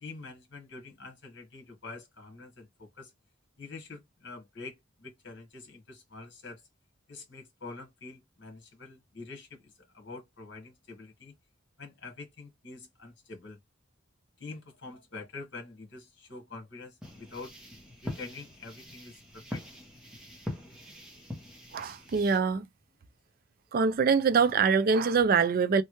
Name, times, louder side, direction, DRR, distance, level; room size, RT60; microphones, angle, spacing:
voice 1, 0.0-3.1 3.6-6.6 7.1-11.3 11.8-13.6 14.4-17.5 18.0-19.6, left 3 dB, 65° left, 1.3 m, -46 dB
sound 1, 17.0-22.4, left 1 dB, 5° right, 1.0 m, -43 dB
voice 2, 21.7-22.7 23.7-25.8, right 5 dB, 50° right, 0.4 m, -24 dB
3.1 x 2.2 x 3.0 m
head